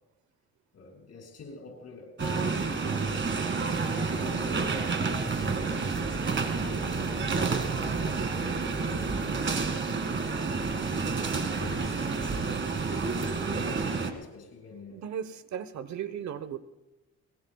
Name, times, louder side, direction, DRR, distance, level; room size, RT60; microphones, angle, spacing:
voice 1, 0.7-9.2 11.3-15.0, left 4 dB, 55° left, 6.9 m, -46 dB
sound 1, 2.2-14.1, right 4 dB, 40° right, 2.3 m, -29 dB
voice 2, 14.9-16.6, right 9 dB, 65° right, 1.2 m, -36 dB
22.0 x 21.5 x 2.4 m
cardioid pair, 90°, 30 cm